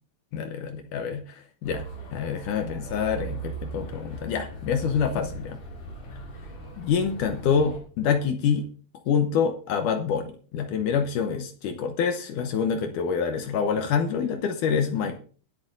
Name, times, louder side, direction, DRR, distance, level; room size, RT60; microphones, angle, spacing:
voice 1, 0.3-1.8 2.1-5.6 6.8-8.7 9.1-15.2, left 6 dB, 75° left, 7 dB, 2.1 m, -26 dB
sound 1, 1.6-7.8, right 3 dB, 55° left, 3.8 m, -39 dB
19.5 x 8.7 x 2.6 m, 0.41 s
omnidirectional pair, 4.3 m